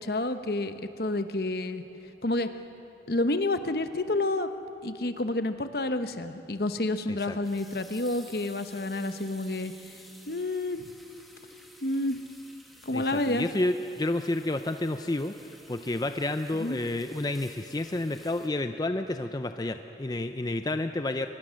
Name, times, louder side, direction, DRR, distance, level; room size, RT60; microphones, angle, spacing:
voice 1, 0.0-1.8 2.2-2.5 3.1-4.5 4.8-9.7 10.3-10.8 11.8-12.2 12.9-13.5 16.6-16.8, left 2 dB, 55° left, 9 dB, 1.0 m, -29 dB
sound 1, 7.2-18.5, equal, ahead, 1.6 m, -53 dB
voice 2, 12.9-15.3 15.7-21.3, left 2 dB, 20° left, 8 dB, 0.5 m, -30 dB
24.0 x 22.0 x 6.4 m, 2.9 s
head